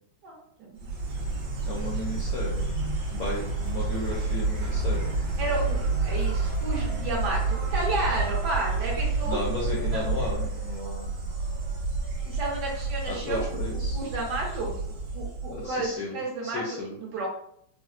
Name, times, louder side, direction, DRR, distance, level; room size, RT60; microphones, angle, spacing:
voice 1, 0.2-0.9 5.4-9.4 9.9-10.0 12.2-14.7 15.1-17.3, right 2 dB, 65° right, -2 dB, 1.3 m, -32 dB
Insect, 0.8-15.9, right 3 dB, 90° right, 1.5 m, -29 dB
voice 2, 1.7-2.6 3.1-5.1 9.2-11.1 13.1-14.0 15.5-16.9, left 2 dB, 75° left, -4 dB, 0.9 m, -34 dB
4.0 x 2.0 x 2.4 m, 0.66 s
omnidirectional pair, 2.1 m